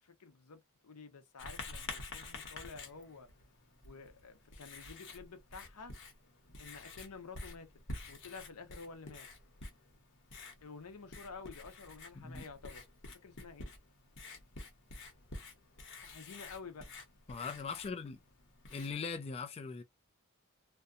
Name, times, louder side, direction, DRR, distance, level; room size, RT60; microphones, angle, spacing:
voice 1, 0.0-3.3 3.8-5.9 6.6-7.7 8.1-9.3 10.6-12.8 13.1-13.7 16.0-16.9, left 4 dB, 80° left, 0.7 m, -50 dB
Writing, 1.4-19.2, left 3 dB, 60° left, 0.9 m, -49 dB
voice 2, 17.3-18.2 18.7-19.8, left 5 dB, 25° left, 0.3 m, -40 dB
2.7 x 2.1 x 2.4 m
head